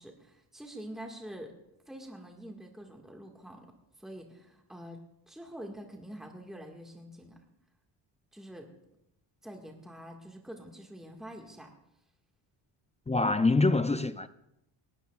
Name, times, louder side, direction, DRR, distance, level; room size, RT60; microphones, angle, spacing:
voice 1, 0.0-1.5 1.9-3.7 4.0-5.0 5.3-7.4 8.3-8.7 9.4-11.7, equal, ahead, 1.8 m, -46 dB
voice 2, 13.1-14.3, left 3 dB, 15° left, 0.4 m, -25 dB
19.0 x 13.0 x 2.4 m
cardioid pair, 85°, 50 cm